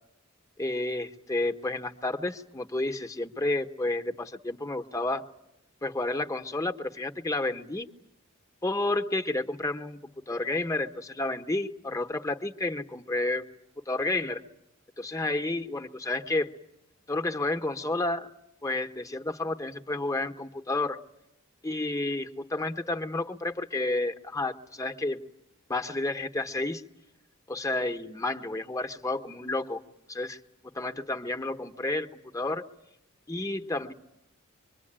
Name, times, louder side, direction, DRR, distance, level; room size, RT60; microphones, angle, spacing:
voice 1, 0.6-5.2 5.8-7.9 8.6-10.0 10.3-13.4 13.9-14.4 15.0-16.5 17.1-18.3 18.6-21.0 21.6-25.2 25.7-26.8 27.5-29.8 30.1-30.4 30.7-32.7 33.3-33.9, left 2 dB, 15° left, 7 dB, 1.1 m, -30 dB
26.0 x 23.0 x 8.8 m, 0.86 s
head